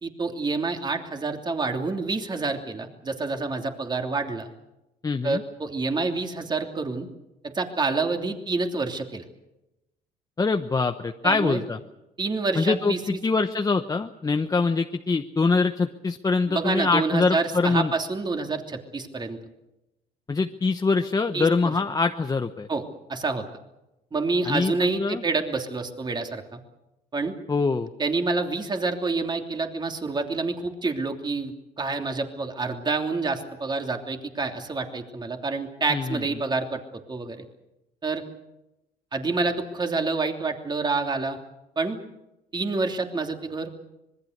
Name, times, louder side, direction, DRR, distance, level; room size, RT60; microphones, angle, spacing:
voice 1, 0.0-4.5 5.2-7.1 7.4-9.2 11.2-11.6 12.2-13.2 16.5-19.4 21.3-21.7 22.7-22.8 23.1-23.4 24.1-26.6 27.1-27.3 28.0-36.8 37.1-37.4 38.0-38.2 39.1-41.4 41.8-42.0 42.5-43.7, right 3 dB, 25° right, 4 dB, 3.0 m, -28 dB
voice 2, 5.0-5.4 10.4-11.8 12.6-17.9 20.3-22.7 24.4-24.7 25.0-25.2 27.5-27.9 35.9-36.2, left 4 dB, 20° left, 6 dB, 1.0 m, -24 dB
25.5 x 21.0 x 6.7 m, 0.95 s
cardioid pair, 110°, 17 cm